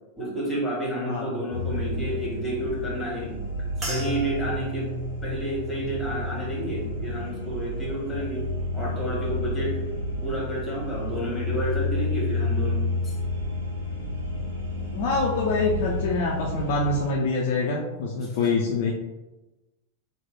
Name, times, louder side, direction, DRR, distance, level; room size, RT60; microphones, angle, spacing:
voice 1, 0.2-3.3 3.8-4.9 5.2-8.4 8.7-13.2 18.2-18.4, right 1 dB, 10° left, -5 dB, 1.4 m, -31 dB
sound 1, 1.5-17.1, left 2 dB, 70° right, 1.0 m, -30 dB
sound 2, 3.8-8.3 8.7-9.3 9.9-10.2, right 2 dB, 25° right, 1.0 m, -38 dB
voice 2, 14.9-18.9, left 3 dB, 50° left, -2 dB, 0.4 m, -25 dB
3.0 x 2.1 x 3.6 m, 1.1 s
figure-of-eight pair, 90°, 0 cm